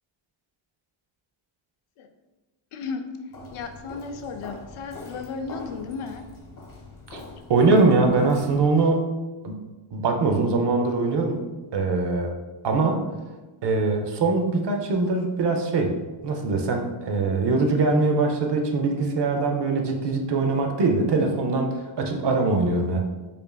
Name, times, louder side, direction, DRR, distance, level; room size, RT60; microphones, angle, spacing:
voice 1, 2.7-3.1 3.5-6.3, left 5 dB, 80° left, 6 dB, 0.6 m, -34 dB
Walk footsteps, 3.3-8.9, left 3 dB, 45° left, 0.9 m, -43 dB
voice 2, 7.5-9.1 9.4-9.6 9.9-11.4 11.7-12.3 12.6-13.1 13.6-15.9 16.2-23.0, right 3 dB, 55° right, 4 dB, 0.6 m, -22 dB
5.1 x 2.6 x 2.2 m, 1.2 s
wide cardioid pair, 105°, 50 cm